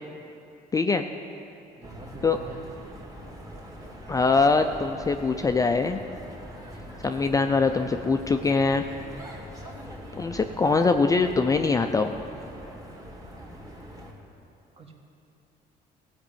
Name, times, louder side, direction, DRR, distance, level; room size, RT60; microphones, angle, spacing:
voice 1, 0.7-1.1 2.2-2.4 4.1-6.0 7.0-8.8 10.2-12.1, left 4 dB, 20° left, 6 dB, 0.4 m, -23 dB
voice 2, 1.7-2.6 14.8-14.9, right 2 dB, 35° right, 2 dB, 1.6 m, -44 dB
sound 1, 1.8-14.1, equal, 20° right, 2.1 m, -42 dB
15.0 x 5.3 x 8.6 m, 2.7 s
cardioid pair, 110°, 17 cm